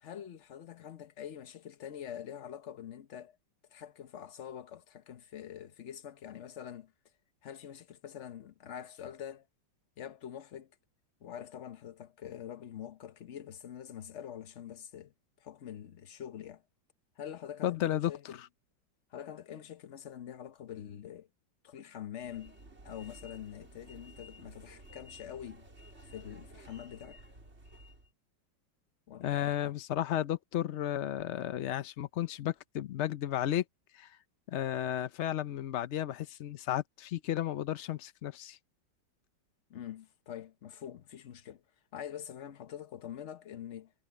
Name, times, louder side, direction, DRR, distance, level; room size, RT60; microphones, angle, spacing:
voice 1, 0.0-3.4 3.7-6.9 7.4-9.4 10.0-10.7 11.2-15.1 15.4-16.6 17.2-18.4 19.1-21.3 21.6-22.6 22.8-25.7 26.1-27.2 29.1-29.7 39.7-41.6 41.9-43.9, left 10 dB, 50° left, 0.9 m, -45 dB
voice 2, 17.6-18.1 18.4-18.5 29.2-33.6 33.9-34.1 34.5-38.6, left 12 dB, 75° left, 0.6 m, -33 dB
sound 1, 22.2-28.1, equal, 35° right, 4.2 m, -53 dB
omnidirectional pair, 2.0 m